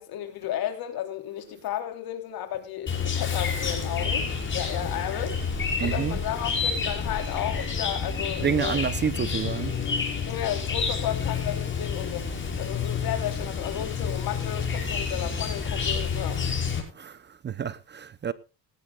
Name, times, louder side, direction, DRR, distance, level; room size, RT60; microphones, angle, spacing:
voice 1, 0.0-4.3 4.5-5.4 5.8-8.8 10.2-16.5, left 11 dB, 65° left, 3.4 m, -33 dB
Chirp tweet, 2.9-16.8, left 5 dB, 30° left, 5.6 m, -29 dB
voice 2, 5.8-6.2 8.4-9.7 16.9-18.3, right 7 dB, 30° right, 0.7 m, -29 dB
18.0 x 16.5 x 2.4 m
cardioid pair, 135°, 38 cm